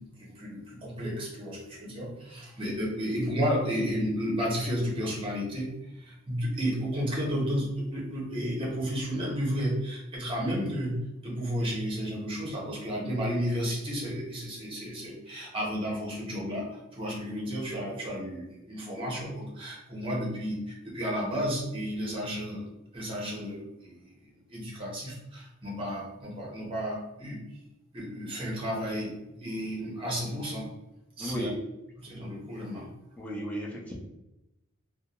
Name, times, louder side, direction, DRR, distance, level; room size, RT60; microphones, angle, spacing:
voice 1, 0.2-5.7 6.0-22.6 22.9-27.4 27.9-29.1 29.4-30.7 31.2-31.5 32.0-32.9, equal, 25° right, -3 dB, 0.8 m, -32 dB
voice 2, 31.2-31.5 33.2-33.9, equal, 5° left, -4 dB, 0.6 m, -34 dB
2.4 x 2.2 x 2.9 m, 0.92 s
head